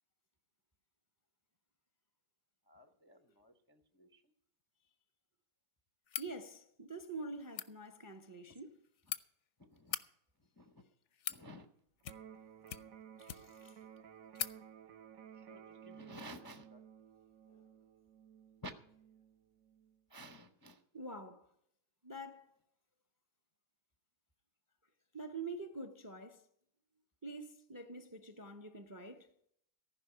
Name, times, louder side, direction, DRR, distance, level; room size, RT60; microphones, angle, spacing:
voice 1, 2.7-4.2 9.6-10.0 10.6-10.8 11.3-11.7 15.3-16.9 18.6-18.7 20.1-20.8, equal, 25° left, 0.5 m, -53 dB
sound 1, 6.1-6.3 7.4-7.7 8.7-9.2 9.8-10.0 10.8-11.4 12.0-12.4 12.7-13.6 14.0-14.1 14.3-14.6, left 10 dB, 60° left, 0.8 m, -42 dB
voice 2, 6.2-8.8 13.2-13.8 17.5-17.6 20.9-21.5 22.0-22.5 25.1-26.4 27.2-29.3, right 2 dB, 20° right, 0.5 m, -46 dB
Electric guitar, 12.0-20.0, right 8 dB, 65° right, 1.1 m, -56 dB
14.5 x 5.5 x 8.8 m
omnidirectional pair, 1.7 m